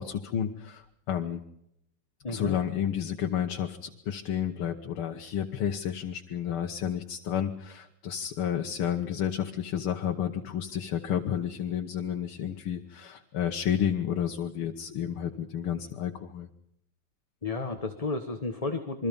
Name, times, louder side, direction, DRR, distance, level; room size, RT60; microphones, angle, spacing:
voice 1, 0.0-1.4 2.3-16.5, left 9 dB, 85° left, 3 dB, 2.1 m, -31 dB
voice 2, 2.2-2.6 17.4-19.1, left 3 dB, 20° left, 5 dB, 1.3 m, -32 dB
27.5 x 23.0 x 5.4 m, 0.76 s
omnidirectional pair, 2.3 m